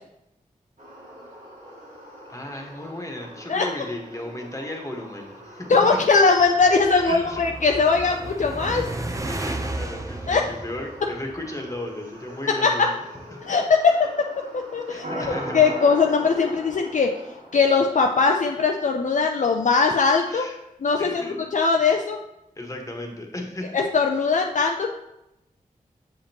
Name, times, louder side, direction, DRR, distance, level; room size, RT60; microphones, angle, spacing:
sound 1, 0.8-16.5, equal, 60° right, 2.0 m, -45 dB
voice 1, 2.3-5.7 7.0-7.4 9.2-13.0 13.3-13.5 14.9-15.6 20.3-20.6 21.0-21.4 22.6-23.7, left 1 dB, 20° left, 2 dB, 1.5 m, -35 dB
voice 2, 5.7-8.9 10.3-10.4 12.6-12.9 13.5-13.9 14.7-15.3 15.5-17.1 17.5-20.4 20.8-22.2 23.7-24.9, left 4 dB, 60° left, 2 dB, 0.5 m, -20 dB
sound 2, 6.2-11.7, right 2 dB, 20° right, 0.7 m, -34 dB
sound 3, 15.0-18.4, right 1 dB, 85° right, 2.4 m, -35 dB
7.0 x 5.1 x 2.9 m, 0.87 s
cardioid pair, 40°, 14 cm